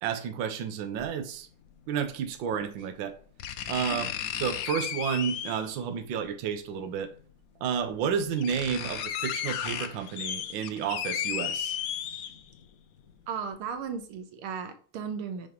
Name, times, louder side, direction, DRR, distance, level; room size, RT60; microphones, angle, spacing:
voice 1, 0.0-1.5 1.9-3.1 3.7-4.0 4.4-7.1 7.6-11.8, right 7 dB, 65° right, 1.5 m, -31 dB
sound 1, 1.0-1.1 2.5-2.6 3.4-5.8 7.1-7.2 7.9-8.0 8.2-12.6 13.1-13.2, left 9 dB, 75° left, 0.8 m, -34 dB
voice 2, 13.3-15.5, right 6 dB, 85° right, 1.7 m, -36 dB
5.9 x 5.7 x 5.2 m
omnidirectional pair, 2.3 m